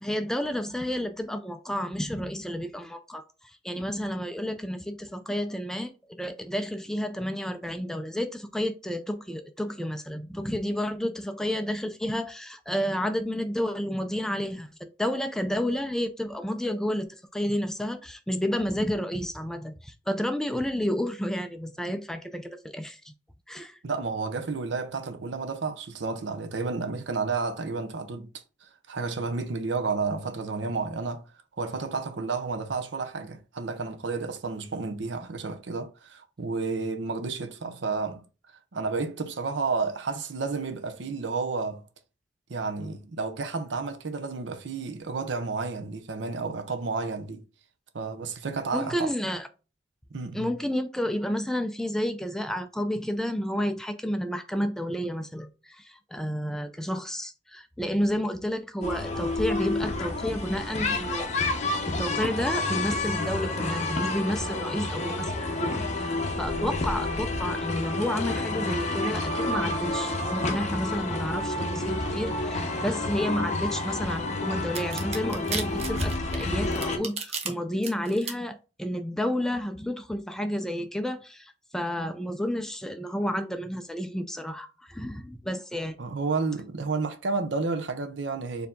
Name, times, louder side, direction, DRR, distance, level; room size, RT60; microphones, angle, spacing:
voice 1, 0.0-23.1 23.5-23.8 48.7-49.5 50.3-61.3 61.9-66.1 66.4-86.0, equal, 5° left, 0.3 m, -31 dB
voice 2, 23.8-28.3 28.6-31.2 31.6-38.2 38.7-41.8 42.5-47.4 47.9-49.1 50.1-50.5 54.2-54.3 86.0-88.7, right 4 dB, 75° right, 0.6 m, -31 dB
sound 1, 58.8-77.0, left 2 dB, 35° left, 0.7 m, -29 dB
sound 2, 74.7-77.5 77.8-78.3, right 5 dB, 35° right, 0.7 m, -33 dB
4.5 x 2.7 x 3.6 m
head